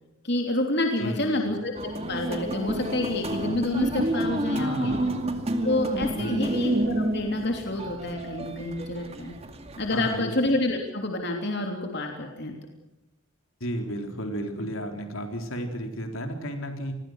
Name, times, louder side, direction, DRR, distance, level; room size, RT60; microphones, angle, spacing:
voice 1, 0.2-1.7 2.1-5.0 5.6-9.4 9.8-12.5, left 1 dB, 50° left, 2 dB, 3.2 m, -28 dB
voice 2, 1.0-1.5 4.5-5.2 6.2-6.6 9.9-10.3 13.6-16.9, equal, 75° left, 5 dB, 3.9 m, -33 dB
sound 1, 1.7-10.2, right 1 dB, 30° right, 2.3 m, -29 dB
28.0 x 21.5 x 6.5 m, 0.95 s
head